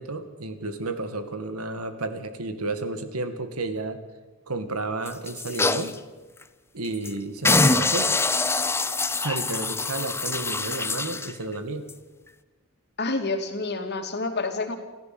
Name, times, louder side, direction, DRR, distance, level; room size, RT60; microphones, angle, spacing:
voice 1, 0.0-4.0 4.5-6.0 6.7-8.2 9.2-11.9, right 2 dB, 85° right, 9 dB, 2.2 m, -32 dB
sound 1, 5.1-6.0 6.4-6.5 6.8-7.1 7.4-11.3 11.9-12.0, left 3 dB, 10° left, 0.8 m, -24 dB
voice 2, 13.0-14.8, left 3 dB, 50° left, 5 dB, 2.7 m, -28 dB
28.0 x 14.5 x 7.9 m, 1.3 s
head